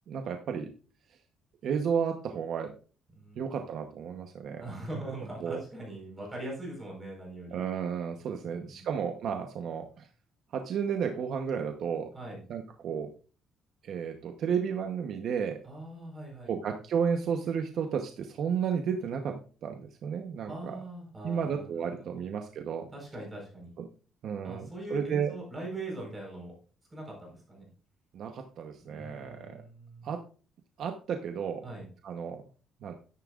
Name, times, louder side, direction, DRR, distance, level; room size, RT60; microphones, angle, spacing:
voice 1, 0.1-0.7 1.6-2.7 3.4-4.6 5.1-5.2 5.4-5.6 7.5-10.1 10.5-12.1 12.5-13.1 13.8-15.6 16.4-20.8 21.2-22.9 24.2-25.3 28.1-29.6 30.0-30.2 30.8-31.6 32.0-32.4 32.8-32.9, right 7 dB, 55° right, 5 dB, 0.9 m, -32 dB
voice 2, 3.1-3.6 4.6-7.6 8.5-8.9 12.1-12.4 15.6-16.5 20.5-22.2 22.9-23.7 24.4-26.5 26.9-27.7 28.8-30.1 31.6-31.9, right 1 dB, 15° right, -2 dB, 4.5 m, -41 dB
13.0 x 10.0 x 2.5 m, 0.38 s
cardioid pair, 160°, 0 cm